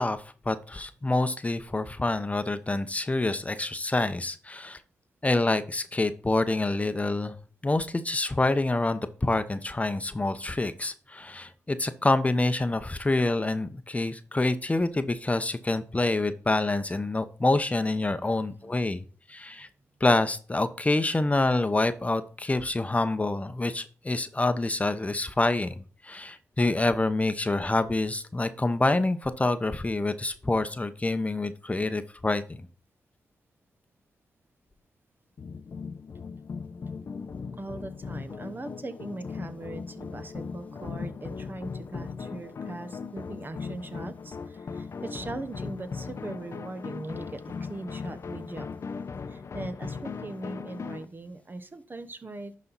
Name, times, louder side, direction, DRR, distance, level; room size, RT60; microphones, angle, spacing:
voice 1, 0.0-4.8 5.2-7.4 7.6-19.7 20.0-25.8 26.0-32.4, left 2 dB, 25° left, 10 dB, 0.8 m, -27 dB
sound 1, 35.4-51.1, left 5 dB, 55° left, 0.7 m, -38 dB
voice 2, 37.6-48.7 49.3-52.5, right 2 dB, 35° right, 10 dB, 1.0 m, -40 dB
11.0 x 4.2 x 4.0 m, 0.40 s
supercardioid pair, 45°, 6 cm